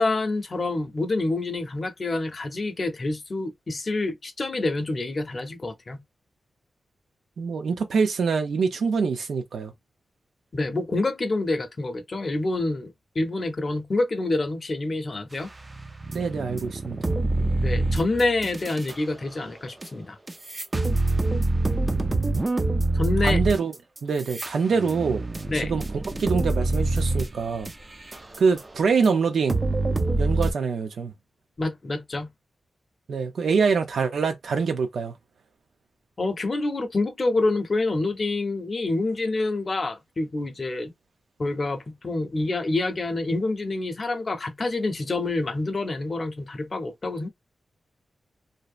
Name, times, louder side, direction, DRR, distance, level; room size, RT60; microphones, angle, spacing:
voice 1, 0.0-6.0 10.5-15.5 17.6-20.2 23.0-23.4 25.5-25.7 31.6-32.3 36.2-40.9 41.4-47.3, left 2 dB, 40° left, 0.6 m, -27 dB
voice 2, 7.4-9.7 16.1-17.0 23.2-23.7 24.0-25.2 25.5-25.8 26.2-27.7 28.4-29.6 30.2-31.1 33.1-35.1, right 5 dB, 85° right, 0.5 m, -24 dB
sound 1, 15.6-18.9 19.8-19.9 20.3-28.6 29.0-29.1 29.5-30.5, right 2 dB, 25° right, 0.3 m, -25 dB
2.7 x 2.0 x 2.4 m
wide cardioid pair, 105°, 0 cm